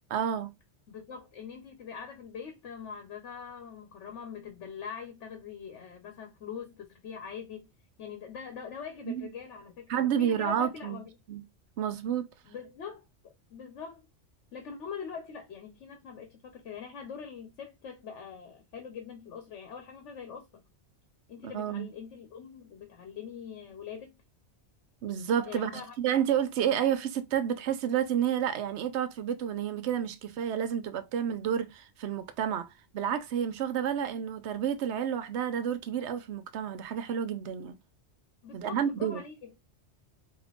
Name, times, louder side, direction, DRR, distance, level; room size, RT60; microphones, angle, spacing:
voice 1, 0.1-0.5 9.1-9.3 9.9-11.0 11.3-11.4 11.8-12.2 21.4-21.9 25.0-32.7 32.9-37.7 38.5-39.2, right 9 dB, 75° right, 0.9 m, -30 dB
voice 2, 0.9-7.7 8.0-11.1 12.4-13.0 13.5-14.0 14.5-20.6 21.3-24.2 25.5-25.9 38.4-39.5, left 6 dB, 90° left, 1.1 m, -43 dB
5.0 x 2.9 x 2.4 m
omnidirectional pair, 1.2 m